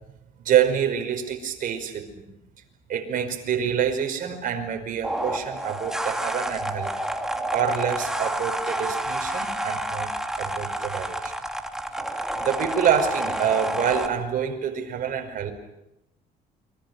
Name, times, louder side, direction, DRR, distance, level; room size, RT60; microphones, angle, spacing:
voice 1, 0.4-2.2 2.9-6.9 7.5-10.1 10.4-11.3 12.4-15.5, right 8 dB, 55° right, 4 dB, 5.3 m, -26 dB
sound 1, 5.0-14.1, right 1 dB, 5° right, 2.9 m, -29 dB
30.0 x 24.0 x 6.2 m, 0.86 s
cardioid pair, 110°, 17 cm